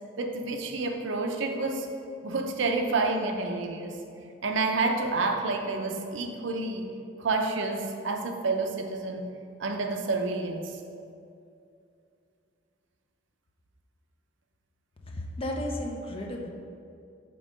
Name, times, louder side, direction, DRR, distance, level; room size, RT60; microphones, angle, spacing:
voice 1, 0.2-1.9 2.2-4.0 4.4-6.9 7.2-9.3 9.6-10.8, right 3 dB, 65° right, 4 dB, 0.5 m, -29 dB
voice 2, 15.1-16.5, left 1 dB, 30° left, 1 dB, 0.5 m, -33 dB
5.4 x 3.7 x 5.1 m, 2.5 s
head